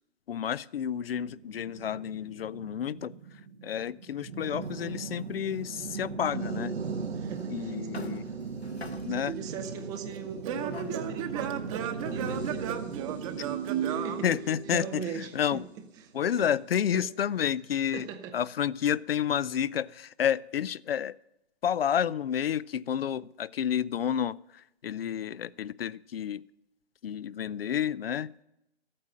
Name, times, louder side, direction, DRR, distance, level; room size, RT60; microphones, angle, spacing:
voice 1, 0.3-6.7 7.5-8.3 9.0-9.4 14.2-15.6 16.1-18.1 18.3-21.2 21.6-26.4 27.0-28.3, left 9 dB, 65° left, 0.5 m, -30 dB
sound 1, 0.9-16.4, right 5 dB, 80° right, 1.3 m, -39 dB
sound 2, 4.7-6.1 6.9-7.0 7.3-7.5 7.9-9.4 10.5-12.8, left 4 dB, 85° left, 1.4 m, -46 dB
voice 2, 7.1-7.7 8.2-8.3 9.3-13.6 13.8-14.3 14.7-15.6 16.4-16.5 16.9-17.0 17.9-18.3, right 7 dB, 10° right, 0.5 m, -40 dB
Singing / Plucked string instrument, 9.2-15.0, right 9 dB, 30° right, 1.0 m, -35 dB
13.5 x 8.6 x 6.4 m
figure-of-eight pair, 130°, 31 cm